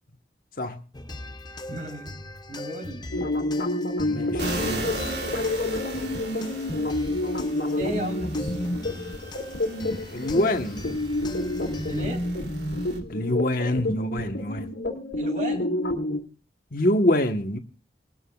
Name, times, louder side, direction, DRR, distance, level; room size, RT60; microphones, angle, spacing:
sound 1, 0.9-12.1, left 2 dB, 25° left, 0.7 m, -40 dB
voice 1, 1.7-2.2 2.5-3.1 7.8-8.8 11.9-12.3 15.2-15.8, right 1 dB, 45° right, 3.9 m, -34 dB
sound 2, 3.1-16.2, left 1 dB, 85° left, 2.2 m, -29 dB
voice 2, 4.0-4.9 10.1-10.8 13.1-14.7 16.7-17.6, left 1 dB, 50° left, 1.2 m, -25 dB
sound 3, 4.4-13.0, right 2 dB, 70° right, 2.6 m, -38 dB
22.5 x 13.0 x 2.4 m
head